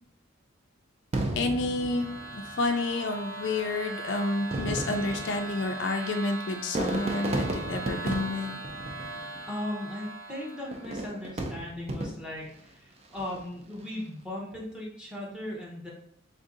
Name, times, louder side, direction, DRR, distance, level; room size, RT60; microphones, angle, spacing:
Fireworks, 1.1-2.7 3.6-3.7 4.4-9.6 10.7-12.5 13.0-13.5, right 2 dB, 30° right, 0.4 m, -34 dB
sound 1, 1.3-11.0, right 1 dB, 70° right, 0.8 m, -40 dB
voice 1, 1.4-2.1 2.3-8.6, left 2 dB, 60° left, 5 dB, 0.4 m, -29 dB
voice 2, 9.5-15.9, left 1 dB, 5° right, -4 dB, 0.8 m, -37 dB
3.5 x 2.7 x 3.7 m, 0.68 s
head